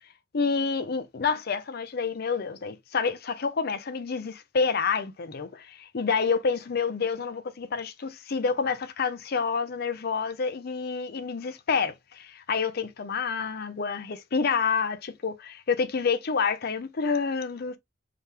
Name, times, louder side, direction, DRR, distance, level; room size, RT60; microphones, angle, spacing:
voice 1, 0.3-17.8, left 5 dB, 55° left, 0.6 m, -28 dB
3.7 x 2.9 x 3.3 m
head